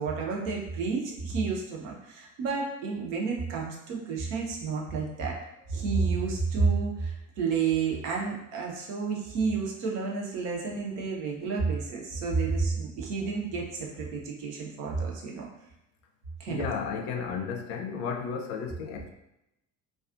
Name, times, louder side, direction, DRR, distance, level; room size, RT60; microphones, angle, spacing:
voice 1, 0.0-5.4 5.7-15.4 16.4-16.7, right 4 dB, 65° right, -2 dB, 0.7 m, -30 dB
voice 2, 16.5-19.1, left 6 dB, 60° left, 3 dB, 0.5 m, -33 dB
2.3 x 2.3 x 2.4 m, 0.87 s
hypercardioid pair, 60°, 42 cm